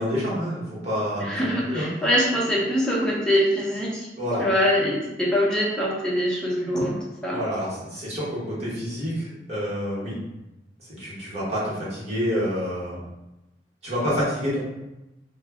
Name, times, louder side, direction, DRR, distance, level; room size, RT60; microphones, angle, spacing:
voice 1, 0.0-1.9 4.2-4.4 7.3-10.2 11.0-13.0 13.8-14.6, equal, 35° right, -8 dB, 1.0 m, -28 dB
voice 2, 1.2-4.1 4.4-7.4, equal, 5° left, -5 dB, 0.6 m, -23 dB
2.2 x 2.1 x 3.4 m, 0.95 s
head